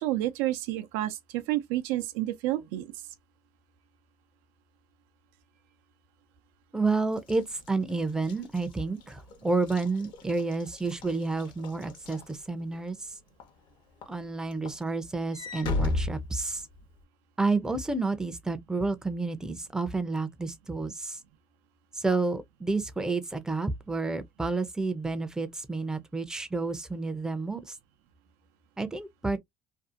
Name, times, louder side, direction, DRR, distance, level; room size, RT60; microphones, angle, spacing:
voice 1, 0.0-2.9, right 15 dB, 90° right, 0.5 m, -30 dB
voice 2, 6.7-13.0 14.1-16.6 17.4-21.2 21.9-27.8 28.8-29.4, right 3 dB, 5° right, 0.5 m, -30 dB
Walk footsteps / Slam, 7.2-12.9 13.4-13.7 14.0-17.0, left 3 dB, 60° left, 0.9 m, -36 dB
2.6 x 2.3 x 2.4 m
cardioid pair, 115°, 9 cm